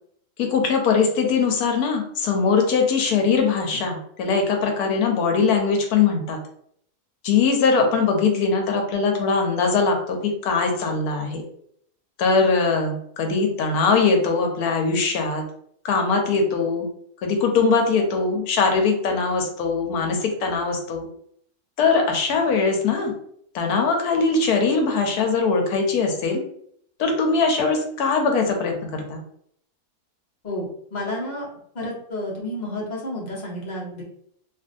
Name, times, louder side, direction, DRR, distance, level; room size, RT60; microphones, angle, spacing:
voice 1, 0.4-6.4 7.2-11.4 12.2-15.4 15.8-16.9 17.2-21.1 21.8-23.1 23.5-26.4 27.0-29.2, left 4 dB, 80° left, 3 dB, 1.1 m, -21 dB
voice 2, 30.4-31.5 31.7-34.0, left 1 dB, 40° left, -4 dB, 0.7 m, -30 dB
2.7 x 2.5 x 2.5 m, 0.67 s
omnidirectional pair, 1.6 m